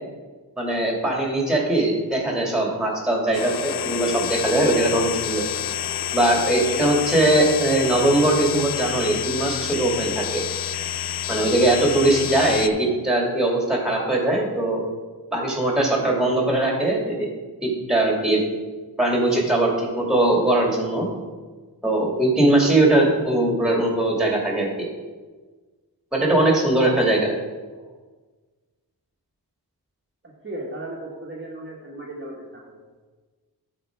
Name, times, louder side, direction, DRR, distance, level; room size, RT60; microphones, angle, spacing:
voice 1, 0.6-5.5 6.1-10.4 11.3-14.8 15.3-17.3 17.6-18.4 19.0-21.1 21.8-24.9 26.1-27.3, right 1 dB, ahead, -1 dB, 2.2 m, -20 dB
sound 1, 3.3-12.7, left 11 dB, 80° left, 0.5 m, -29 dB
voice 2, 30.2-32.8, right 1 dB, 30° right, -4 dB, 1.4 m, -36 dB
12.5 x 4.4 x 4.6 m, 1.3 s
wide cardioid pair, 105°, 38 cm